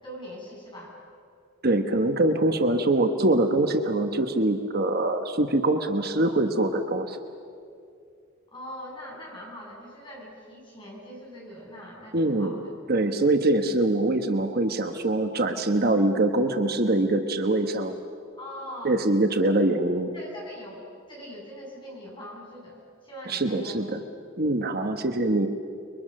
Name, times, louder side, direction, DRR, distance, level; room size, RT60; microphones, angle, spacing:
voice 1, 0.0-0.9 8.5-12.7 18.4-19.0 20.1-20.8 21.1-23.9, equal, 25° left, -4 dB, 7.6 m, -42 dB
voice 2, 1.6-7.2 12.1-12.6 12.9-17.9 18.8-20.1 23.3-24.0 24.4-25.5, right 2 dB, 50° right, 6 dB, 1.2 m, -23 dB
29.5 x 23.0 x 6.5 m, 2.4 s
head